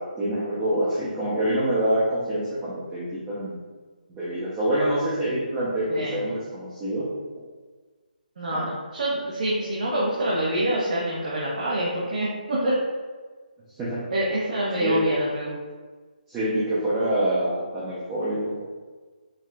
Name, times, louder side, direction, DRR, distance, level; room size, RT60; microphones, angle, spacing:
voice 1, 0.0-3.6 4.1-7.1 8.5-8.7 13.8-14.0 14.8-15.0 16.3-18.6, right 1 dB, 15° right, -10 dB, 0.6 m, -26 dB
voice 2, 5.9-6.2 8.4-12.8 14.1-15.6, right 1 dB, 55° right, -6 dB, 0.7 m, -26 dB
4.6 x 2.4 x 2.2 m, 1.4 s
figure-of-eight pair, 155°, 5 cm